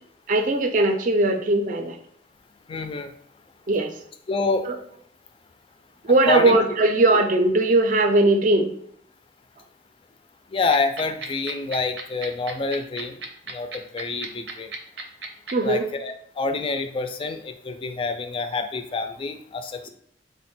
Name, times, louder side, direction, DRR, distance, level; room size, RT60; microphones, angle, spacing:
voice 1, 0.3-2.0 3.7-3.9 4.7-4.8 6.0-8.7 15.5-15.9, right 2 dB, 45° right, 6 dB, 0.4 m, -19 dB
voice 2, 2.7-3.1 4.3-4.6 6.3-6.6 7.1-7.2 10.5-13.2 13.5-14.7 15.6-19.9, left 3 dB, 30° left, 8 dB, 0.3 m, -27 dB
sound 1, 10.7-15.5, right 4 dB, 90° right, 0.6 m, -33 dB
3.7 x 2.1 x 4.2 m, 0.66 s
head